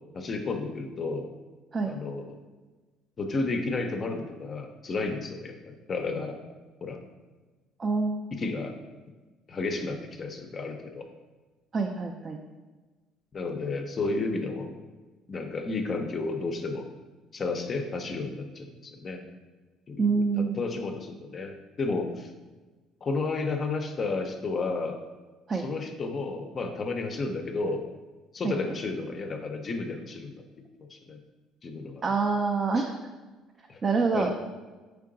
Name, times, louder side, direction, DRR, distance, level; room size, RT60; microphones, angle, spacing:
voice 1, 0.1-1.3 1.9-2.4 3.2-6.4 6.8-7.0 8.3-8.8 9.5-11.1 13.3-14.7 15.3-16.9 17.3-19.2 19.9-22.3 23.0-25.0 25.5-27.8 28.3-30.3 30.9-31.2 31.6-32.0 33.7-33.8 34.1-34.3, left 3 dB, 35° left, 5 dB, 0.4 m, -32 dB
voice 2, 7.8-8.3 11.7-12.4 20.0-20.6 25.5-25.7 28.4-28.8 32.0-32.9 33.8-34.3, right 4 dB, 30° right, 3 dB, 0.3 m, -26 dB
3.7 x 3.3 x 3.7 m, 1.3 s
cardioid pair, 115°, 0 cm